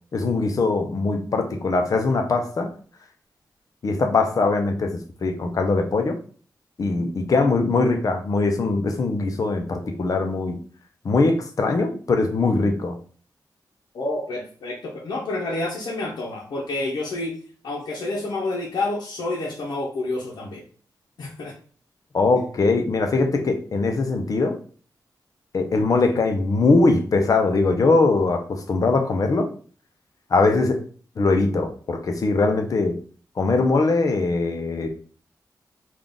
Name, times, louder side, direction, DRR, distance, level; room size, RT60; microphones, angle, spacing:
voice 1, 0.1-2.7 3.8-6.2 6.8-10.6 11.0-13.0 22.1-24.6 25.5-29.5 30.3-30.8 31.2-33.0 33.4-34.9, left 3 dB, 55° left, 5 dB, 0.7 m, -21 dB
voice 2, 13.9-17.4 17.6-20.6 21.2-21.5, left 2 dB, 85° left, -3 dB, 0.8 m, -29 dB
3.7 x 2.4 x 3.6 m, 0.43 s
wide cardioid pair, 95°, 7 cm